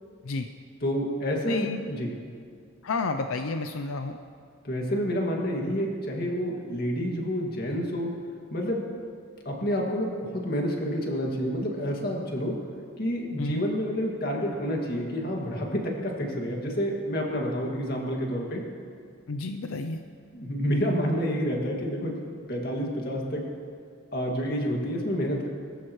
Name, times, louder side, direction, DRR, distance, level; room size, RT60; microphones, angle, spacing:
voice 1, 0.8-2.1 4.6-8.1 8.5-9.0 9.5-12.6 13.0-18.6 20.3-23.5 24.1-25.5, equal, 45° left, -1 dB, 2.1 m, -29 dB
voice 2, 1.5-1.8 2.8-4.2 13.4-13.7 19.3-20.0, left 3 dB, 80° left, 7 dB, 0.6 m, -31 dB
21.5 x 14.0 x 3.2 m, 2.2 s
head